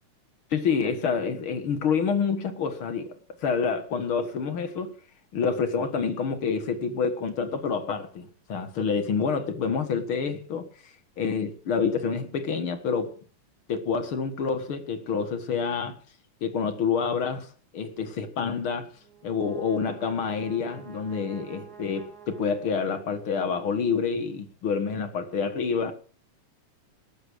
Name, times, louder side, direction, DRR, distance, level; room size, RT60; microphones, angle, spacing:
voice 1, 0.5-3.2 3.4-5.0 5.3-10.7 11.2-13.2 13.7-16.0 16.4-18.9 19.2-25.9, left 5 dB, 50° left, 2.1 m, -28 dB
Brass instrument, 19.0-23.4, right 7 dB, 30° right, 3.7 m, -48 dB
18.0 x 8.3 x 6.4 m
omnidirectional pair, 3.5 m